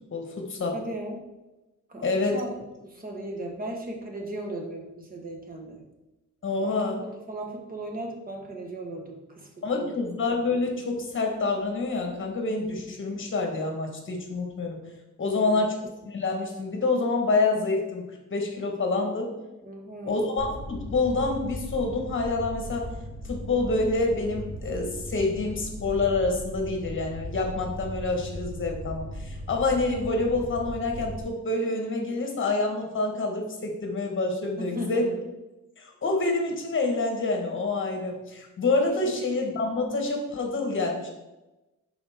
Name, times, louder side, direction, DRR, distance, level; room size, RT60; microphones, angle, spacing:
voice 1, 0.1-0.8 2.0-2.4 6.4-7.0 9.6-14.8 15.2-19.3 20.0-22.9 23.2-35.1 35.8-41.1, left 3 dB, 40° left, 2 dB, 1.4 m, -27 dB
voice 2, 0.7-1.2 1.9-2.0 2.3-2.5 2.8-5.8 6.6-9.9 15.2-15.7 19.6-20.2 34.6-35.2 39.0-39.1, right 1 dB, 30° right, 1 dB, 1.4 m, -37 dB
Fire, 20.4-31.2, equal, 60° right, 2.5 m, -38 dB
11.0 x 4.2 x 3.6 m, 1.0 s
wide cardioid pair, 150°, 31 cm